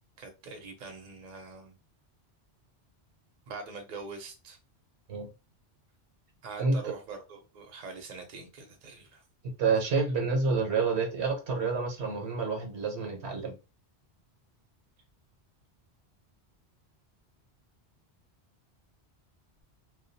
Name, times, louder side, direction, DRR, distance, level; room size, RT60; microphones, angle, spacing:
voice 1, 0.2-1.7 3.5-4.6 6.4-9.2, right 4 dB, 50° right, 0.7 m, -43 dB
voice 2, 6.6-6.9 9.6-13.6, right 4 dB, 70° right, 1.0 m, -28 dB
2.3 x 2.2 x 2.6 m
omnidirectional pair, 1.1 m